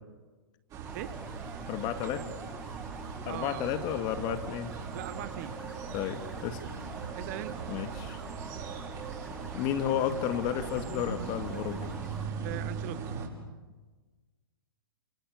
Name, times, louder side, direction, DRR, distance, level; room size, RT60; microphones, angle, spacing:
sound 1, 0.7-13.3, right 5 dB, 30° right, 6.3 m, -39 dB
sound 2, 0.8-12.2, equal, ahead, 1.7 m, -49 dB
voice 1, 1.7-2.3 3.3-4.7 5.9-6.6 7.7-8.2 9.5-11.8, left 10 dB, 35° left, 8 dB, 2.3 m, -32 dB
voice 2, 3.3-3.7 4.9-5.6 7.2-7.6 8.5-8.7 12.4-13.1 13.5-13.7, right 14 dB, 45° right, 13 dB, 1.6 m, -40 dB
29.0 x 28.0 x 7.1 m, 1.3 s
hypercardioid pair, 115°, 12 cm